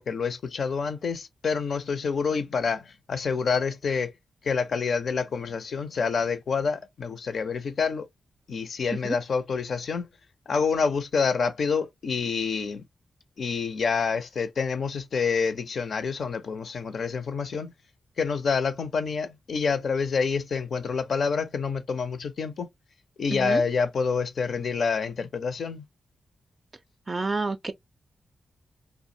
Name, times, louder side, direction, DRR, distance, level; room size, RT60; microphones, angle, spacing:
voice 1, 0.0-4.1 4.4-8.1 8.5-10.1 10.5-12.8 13.4-17.7 18.2-22.7 23.2-25.9, left 5 dB, 70° left, 0.5 m, -27 dB
voice 2, 23.3-23.6 27.1-27.7, right 3 dB, 40° right, 0.3 m, -29 dB
2.3 x 2.1 x 2.6 m
supercardioid pair, 45°, 0 cm